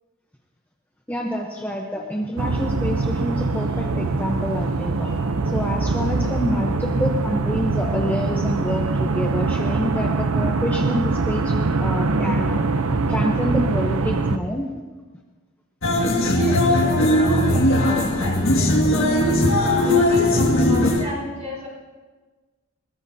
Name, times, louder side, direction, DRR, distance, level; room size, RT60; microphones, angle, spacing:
voice 1, 1.1-5.2 5.5-11.5 11.8-12.6 13.1-14.7 16.0-16.1, equal, 10° left, 0 dB, 0.8 m, -27 dB
sound 1, 2.4-14.4, right 3 dB, 80° right, 0.7 m, -23 dB
sound 2, 15.8-21.1, left 1 dB, 60° left, 1.9 m, -18 dB
voice 2, 16.3-19.1 19.6-21.7, left 1 dB, 30° right, -3 dB, 6.2 m, -34 dB
21.0 x 19.5 x 2.8 m, 1.4 s
head